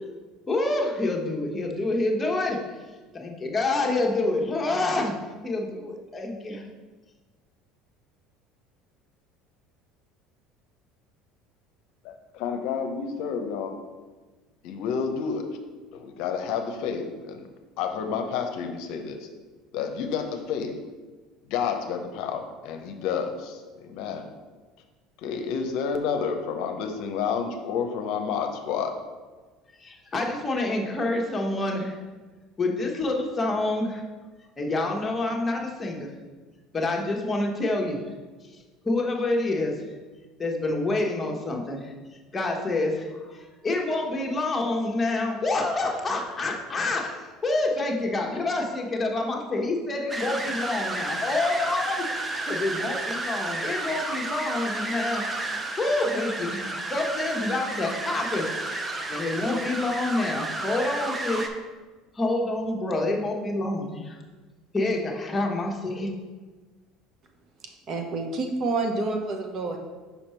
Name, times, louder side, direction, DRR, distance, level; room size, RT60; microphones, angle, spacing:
voice 1, 0.5-2.6 3.1-5.1 5.4-6.7 29.8-32.0 32.6-34.0 34.6-36.1 36.7-38.0 38.8-39.7 40.4-41.9 42.3-52.0 52.4-55.3 55.8-61.4 62.1-64.2 64.7-66.1, left 2 dB, 20° left, 0 dB, 1.1 m, -27 dB
voice 2, 12.0-13.7 14.6-15.5 15.9-17.5 17.8-19.3 19.7-20.8 21.5-24.3 25.2-28.9, left 6 dB, 70° left, 5 dB, 0.7 m, -30 dB
sound 1, 50.1-61.5, right 2 dB, 20° right, 0.6 m, -32 dB
voice 3, 67.6-69.8, right 3 dB, 50° right, 3 dB, 0.9 m, -28 dB
5.6 x 4.4 x 4.4 m, 1.3 s
supercardioid pair, 105°, 0 cm